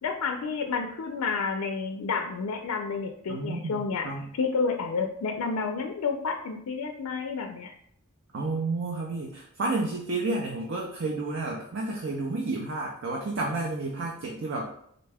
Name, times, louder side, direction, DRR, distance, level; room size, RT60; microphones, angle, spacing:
voice 1, 0.0-4.1 4.3-7.7, left 5 dB, 90° left, 4 dB, 0.4 m, -30 dB
voice 2, 3.3-4.3 8.3-14.7, right 2 dB, 60° right, -1 dB, 0.5 m, -31 dB
3.9 x 2.2 x 3.4 m, 0.69 s
head